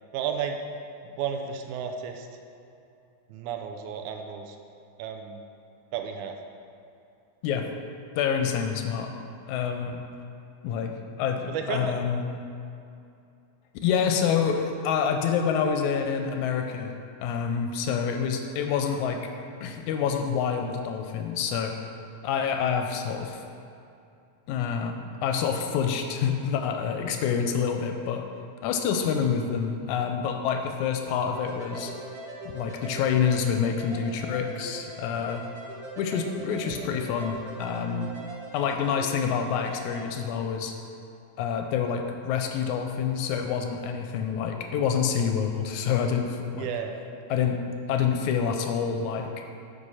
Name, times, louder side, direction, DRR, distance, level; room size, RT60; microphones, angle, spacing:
voice 1, 0.1-0.6 1.0-2.3 3.3-4.6 5.0-5.4 5.9-6.4 11.5-12.0 46.5-46.9, right 7 dB, 80° right, 4 dB, 2.0 m, -32 dB
voice 2, 8.2-9.1 9.5-10.0 10.6-12.2 13.8-16.9 17.2-19.2 19.6-21.7 22.2-23.4 24.5-28.2 28.6-31.9 32.5-35.4 36.0-38.1 38.5-40.7 41.4-46.7 47.3-47.6 47.9-49.3, left 7 dB, 80° left, 4 dB, 1.9 m, -27 dB
sound 1, 31.3-40.0, right 1 dB, 55° right, 2.0 m, -41 dB
8.4 x 4.8 x 5.5 m, 2.6 s
omnidirectional pair, 3.6 m